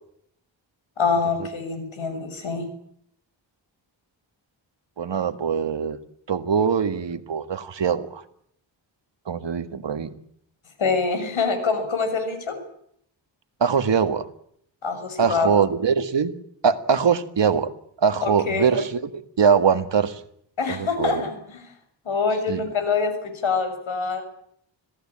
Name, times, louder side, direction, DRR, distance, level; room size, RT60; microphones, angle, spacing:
voice 1, 1.0-2.7 10.8-12.6 14.8-15.5 18.2-18.7 20.6-21.7 22.0-24.2, left 5 dB, 85° left, 6.8 m, -25 dB
voice 2, 5.0-6.0 6.3-8.2 9.3-10.1 13.6-14.3 15.2-16.4 16.6-17.7 18.0-20.2 20.7-21.2 22.5-22.6, right 6 dB, 65° right, 1.9 m, -22 dB
26.5 x 17.0 x 8.8 m
wide cardioid pair, 115°, 46 cm